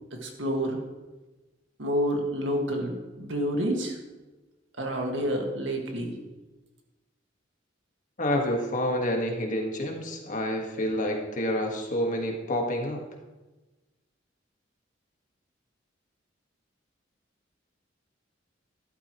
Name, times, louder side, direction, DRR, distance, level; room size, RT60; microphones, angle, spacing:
voice 1, 0.2-0.8 1.8-3.9 4.8-6.1, equal, 80° right, 1 dB, 1.9 m, -28 dB
voice 2, 8.2-13.0, left 1 dB, 45° left, 1 dB, 1.7 m, -28 dB
12.5 x 11.5 x 3.1 m, 1.1 s
head